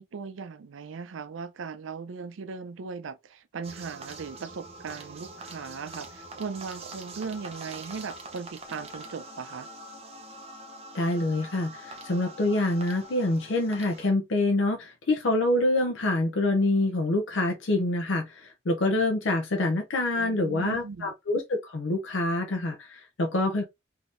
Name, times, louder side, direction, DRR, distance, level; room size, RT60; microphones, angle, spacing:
voice 1, 0.0-9.7 20.1-21.1, right 5 dB, 85° right, 0.5 m, -38 dB
sound 1, 3.6-14.1, right 2 dB, 30° right, 0.6 m, -44 dB
voice 2, 10.9-23.6, left 2 dB, 80° left, 0.6 m, -26 dB
3.5 x 2.8 x 2.5 m
head